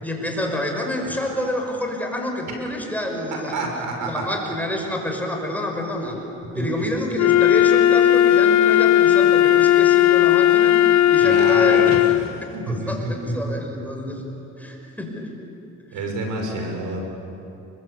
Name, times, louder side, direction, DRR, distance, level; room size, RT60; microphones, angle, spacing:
voice 1, 0.0-3.6 4.0-6.2 6.5-10.8 11.1-12.0 12.4-14.2 14.6-15.4, left 1 dB, 5° left, 1 dB, 6.0 m, -28 dB
voice 2, 3.3-4.3 6.5-6.6 11.2-12.0 12.5-12.9 13.2-13.6 15.9-17.0, right 2 dB, 80° right, 2 dB, 6.9 m, -28 dB
Wind instrument woodwind instrument, 7.2-12.3, left 12 dB, 65° left, 0.8 m, -16 dB
29.5 x 22.5 x 8.6 m, 2.8 s
cardioid pair, 90°, 30 cm